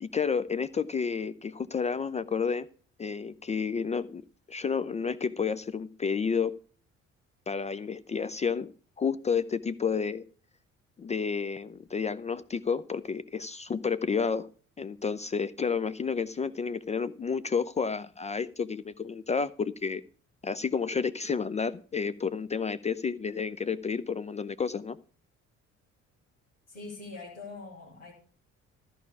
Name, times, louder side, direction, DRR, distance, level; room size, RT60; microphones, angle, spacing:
voice 1, 0.0-2.7 3.0-4.2 4.5-6.5 7.5-8.7 9.0-10.2 11.0-14.5 14.8-20.0 20.4-25.0, left 5 dB, 20° left, 15 dB, 0.4 m, -30 dB
voice 2, 26.7-28.1, left 3 dB, 85° left, -8 dB, 2.4 m, -43 dB
13.5 x 4.8 x 8.2 m, 0.42 s
figure-of-eight pair, 45°, 37 cm